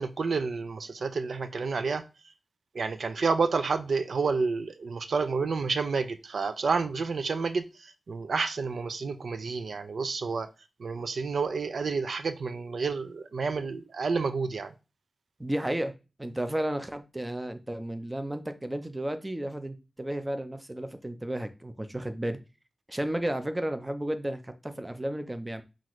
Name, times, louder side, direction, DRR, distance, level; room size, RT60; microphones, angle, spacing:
voice 1, 0.0-2.0 2.7-10.5 10.8-14.7, right 4 dB, 80° right, 0.4 m, -30 dB
voice 2, 15.4-15.9 16.2-22.4 22.9-25.6, right 1 dB, 15° right, 0.5 m, -33 dB
5.8 x 2.4 x 3.0 m
wide cardioid pair, 115°, 0 cm